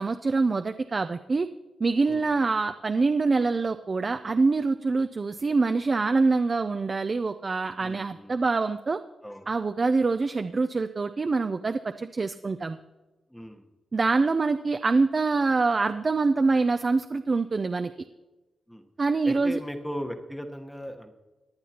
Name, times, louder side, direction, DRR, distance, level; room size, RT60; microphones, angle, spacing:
voice 1, 0.0-1.5 1.8-9.0 9.5-12.8 13.9-17.9 19.0-19.6, right 3 dB, 35° right, 9 dB, 0.4 m, -25 dB
voice 2, 2.1-2.4 7.8-8.3 9.2-9.5 13.3-13.7 18.7-18.8 19.2-21.2, equal, 5° left, 5 dB, 1.1 m, -38 dB
18.5 x 10.5 x 2.9 m, 1.1 s
wide cardioid pair, 115°, 0 cm